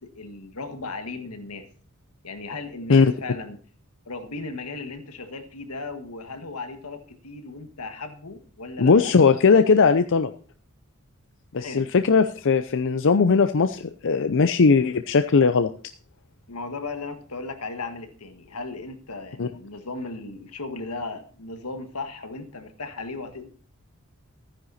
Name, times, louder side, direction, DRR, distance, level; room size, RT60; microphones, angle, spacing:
voice 1, 0.0-1.7 2.2-3.6 4.0-9.2 11.6-11.9 16.5-23.5, left 3 dB, 90° left, 7 dB, 1.7 m, -36 dB
voice 2, 8.8-10.3 11.5-15.7 19.4-19.5, left 5 dB, 60° left, 9 dB, 0.6 m, -19 dB
13.5 x 10.0 x 4.2 m, 0.42 s
head